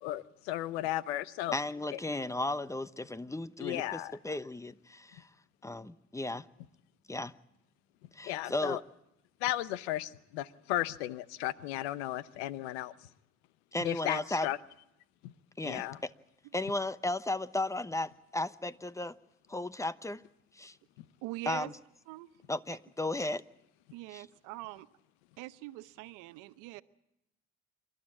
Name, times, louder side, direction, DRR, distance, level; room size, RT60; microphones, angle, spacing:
voice 1, 0.0-1.5 3.6-4.2 8.2-8.8 9.4-12.9 13.8-14.6 15.2-15.3 15.6-16.0, left 14 dB, 85° left, 17 dB, 0.8 m, -35 dB
voice 2, 1.5-5.3 5.6-6.5 7.1-7.3 8.1-8.8 13.7-14.5 15.6-16.1 16.5-19.2 19.5-20.2 20.5-20.8 21.5-21.7 22.5-23.4 24.1-24.2, left 2 dB, 10° left, 15 dB, 0.9 m, -35 dB
voice 3, 21.2-21.7 22.1-22.3 22.7-22.8 23.9-24.9 25.4-26.8, right 18 dB, 80° right, 14 dB, 0.9 m, -43 dB
28.0 x 12.5 x 8.7 m, 0.84 s
hypercardioid pair, 60°, 31 cm